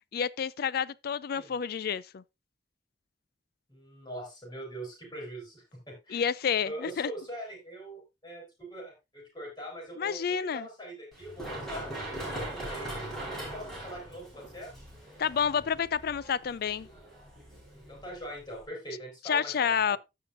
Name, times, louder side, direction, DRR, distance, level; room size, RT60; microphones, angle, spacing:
voice 1, 0.1-2.2 6.1-7.1 10.0-10.7 15.2-16.9 19.3-20.0, left 7 dB, 60° left, 0.4 m, -29 dB
voice 2, 3.7-6.2 6.6-11.9 12.3-14.7 17.7-20.0, right 1 dB, 25° left, 5.0 m, -43 dB
Run, 11.1-18.6, right 1 dB, 5° left, 4.9 m, -41 dB
15.0 x 5.6 x 2.6 m
head